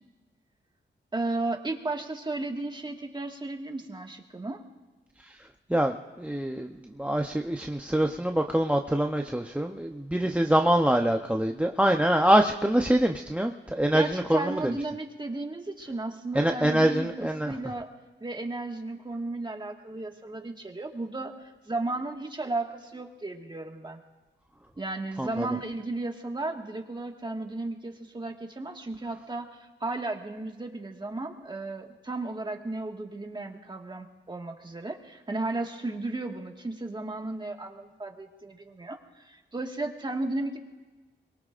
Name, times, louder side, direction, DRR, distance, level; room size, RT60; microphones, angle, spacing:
voice 1, 1.1-4.6 13.9-17.9 18.2-24.0 24.8-29.5 29.8-40.6, right 2 dB, 25° right, 2 dB, 1.8 m, -34 dB
voice 2, 5.7-6.7 7.0-14.7 16.3-17.5 25.2-25.5, right 1 dB, 5° right, 5 dB, 0.7 m, -25 dB
23.5 x 22.0 x 2.5 m, 1.2 s
cardioid pair, 85°, 20 cm